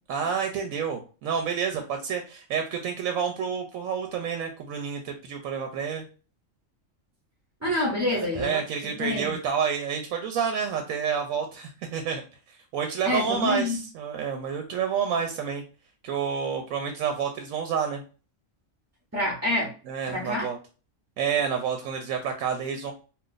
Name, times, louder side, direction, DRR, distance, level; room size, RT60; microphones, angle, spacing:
voice 1, 0.1-6.0 8.1-12.2 12.5-15.6 16.0-18.0 19.9-20.6 21.2-22.9, right 7 dB, 90° right, 4 dB, 1.0 m, -29 dB
voice 2, 7.6-8.6 9.0-9.3 13.0-13.8 19.1-19.7 20.1-20.5, left 1 dB, 15° right, -3 dB, 0.5 m, -27 dB
2.4 x 2.3 x 3.8 m, 0.35 s
omnidirectional pair, 1.4 m